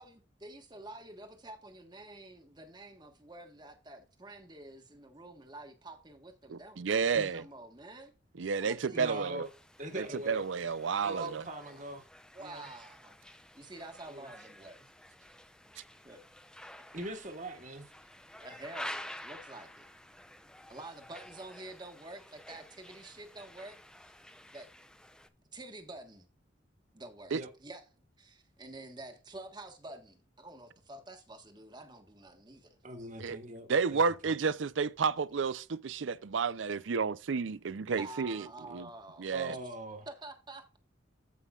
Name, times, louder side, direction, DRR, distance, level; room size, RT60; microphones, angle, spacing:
voice 1, 0.0-8.1 8.6-9.4 11.6-11.9 12.3-13.2 13.5-14.9 16.0-16.2 18.4-19.8 20.7-24.2 24.5-24.7 25.5-26.3 26.9-27.9 28.2-32.8 38.0-39.7 40.1-40.8, right 2 dB, 25° right, 1.4 m, -49 dB
voice 2, 6.5-7.4 8.4-9.5 9.9-11.4 27.3-27.4 33.2-33.4 33.7-38.9 39.2-39.6, right 5 dB, 80° right, 0.5 m, -31 dB
voice 3, 8.9-9.5 9.8-10.4 11.0-12.0 12.4-12.7 14.1-14.3 16.9-17.8 27.3-27.5 32.8-33.7 34.2-34.3 39.3-40.1, right 1 dB, 40° right, 1.7 m, -41 dB
sound 1, 9.4-25.3, left 1 dB, 5° left, 0.5 m, -50 dB
14.5 x 5.6 x 2.4 m
head